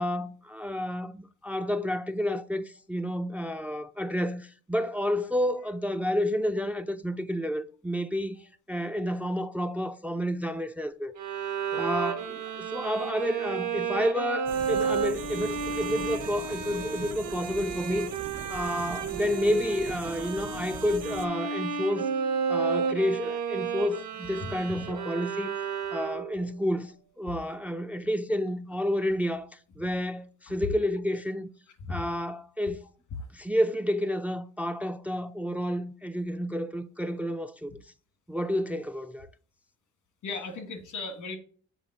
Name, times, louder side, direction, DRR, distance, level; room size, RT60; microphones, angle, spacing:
voice 1, 0.0-11.1 11.8-18.1 18.5-22.1 22.5-25.5 25.9-31.5 31.9-32.8 33.3-37.8 38.3-39.3, equal, 5° right, 0.4 m, -30 dB
Bowed string instrument, 11.2-26.5, right 6 dB, 75° right, 1.2 m, -32 dB
sound 1, 14.5-21.3, right 6 dB, 55° right, 1.0 m, -41 dB
voice 2, 24.4-24.9 30.5-30.6 31.8-32.0 40.2-41.4, left 3 dB, 85° left, 2.0 m, -37 dB
7.4 x 4.0 x 3.9 m
cardioid pair, 90°, 30 cm